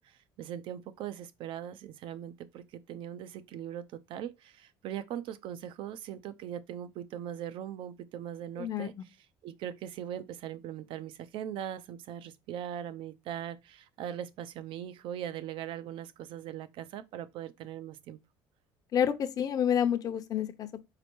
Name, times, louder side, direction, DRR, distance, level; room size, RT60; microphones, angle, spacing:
voice 1, 0.0-9.2 9.4-18.2, right 10 dB, 65° right, 0.7 m, -40 dB
voice 2, 8.6-8.9 18.9-20.8, left 9 dB, 40° left, 0.7 m, -29 dB
5.0 x 4.1 x 4.6 m
cardioid pair, 115°, 9 cm